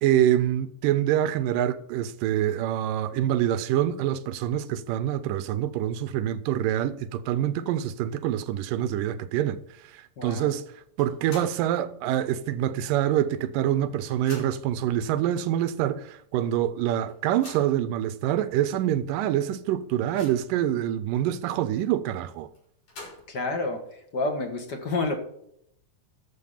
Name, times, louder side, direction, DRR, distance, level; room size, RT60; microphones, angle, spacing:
voice 1, 0.0-9.6 9.9-10.6 11.0-22.5, right 11 dB, 90° right, 2.5 m, -26 dB
voice 2, 10.2-10.5 23.3-25.2, left 3 dB, 40° left, 2.0 m, -29 dB
sound 1, 11.0-11.7 12.1-12.2 13.3-13.4 13.7-14.8 15.5-15.6 16.0-16.1 17.1-17.8 18.5-18.6 19.0-19.1 19.6-20.6 22.6-23.5, left 2 dB, 75° left, 6.6 m, -46 dB
12.0 x 7.5 x 5.7 m
omnidirectional pair, 3.8 m